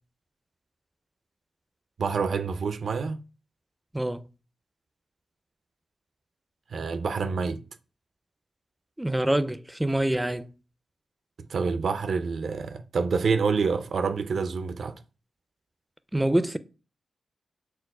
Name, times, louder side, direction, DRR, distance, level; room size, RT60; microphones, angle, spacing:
voice 1, 2.0-3.2 6.7-7.6 11.5-15.0, right 5 dB, 70° right, 0.4 m, -27 dB
voice 2, 9.0-10.5 16.1-16.6, right 1 dB, 15° right, 0.4 m, -25 dB
4.5 x 2.0 x 4.0 m
supercardioid pair, 45°, 0 cm